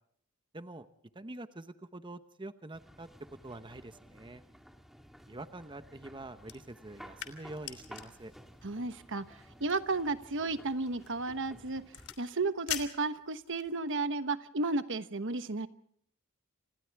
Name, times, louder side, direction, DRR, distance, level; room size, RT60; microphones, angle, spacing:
voice 1, 0.5-0.9 1.1-4.4 5.3-8.3, right 2 dB, 20° right, 10 dB, 1.0 m, -46 dB
sound 1, 2.7-12.2, equal, ahead, 2.0 m, -55 dB
sound 2, 6.4-13.8, left 11 dB, 85° left, 3.0 m, -46 dB
voice 2, 8.6-11.8 12.2-15.7, right 3 dB, 60° right, 11 dB, 1.2 m, -33 dB
29.5 x 27.0 x 3.5 m, 0.65 s
head